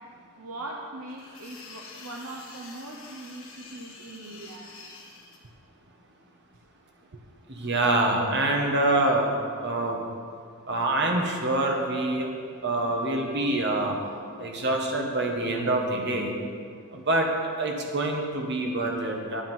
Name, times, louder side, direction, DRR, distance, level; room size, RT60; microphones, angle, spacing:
voice 1, 0.4-4.7 7.1-7.2, right 2 dB, 70° right, 0 dB, 0.8 m, -40 dB
sound 1, 1.1-5.4, left 4 dB, 60° left, 1.5 m, -47 dB
voice 2, 7.5-9.3 9.6-10.0 10.7-12.3 12.6-14.0 14.4-16.3 16.9-17.3 17.6-19.4, right 2 dB, 50° right, 1 dB, 1.4 m, -25 dB
10.0 x 7.6 x 5.5 m, 2.2 s
head